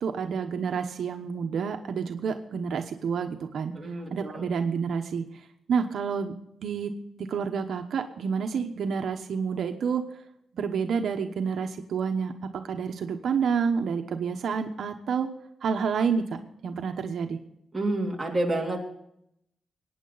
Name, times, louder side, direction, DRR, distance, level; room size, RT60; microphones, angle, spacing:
voice 1, 0.0-3.7 4.1-5.2 5.7-6.3 6.6-6.9 7.2-10.0 10.5-12.3 12.7-15.3 15.6-16.3 16.6-17.4, right 6 dB, 70° right, 5 dB, 1.0 m, -29 dB
voice 2, 3.7-4.5 17.7-18.8, right 2 dB, 10° right, -1 dB, 3.1 m, -29 dB
22.0 x 9.6 x 4.0 m, 0.78 s
wide cardioid pair, 135°, 0 cm